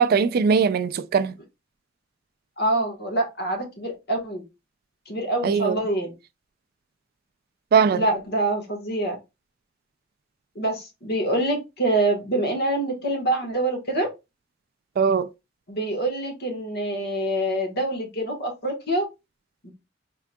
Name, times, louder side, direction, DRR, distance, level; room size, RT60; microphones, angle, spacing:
voice 1, 0.0-1.3 5.4-5.8 7.7-8.0 15.0-15.3, right 6 dB, 50° right, 0.3 m, -20 dB
voice 2, 2.6-4.4 5.1-6.1 7.9-9.1 10.5-14.1 15.7-19.1 19.6-19.7, right 1 dB, 60° left, 1.5 m, -25 dB
4.6 x 3.6 x 2.2 m
head